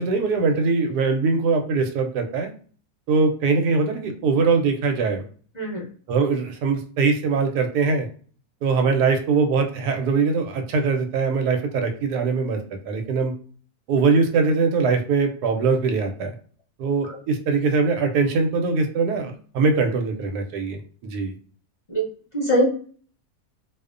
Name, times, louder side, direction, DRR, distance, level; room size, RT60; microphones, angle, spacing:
voice 1, 0.0-2.5 3.1-5.2 6.1-8.1 8.6-12.6 12.9-13.3 13.9-16.3 16.8-21.3, right 4 dB, 85° right, 4 dB, 1.1 m, -22 dB
voice 2, 5.5-5.9 17.1-17.2 21.9-22.1 22.3-22.6, right 1 dB, 30° left, -7 dB, 1.0 m, -22 dB
2.6 x 2.1 x 2.4 m, 0.44 s
omnidirectional pair, 1.7 m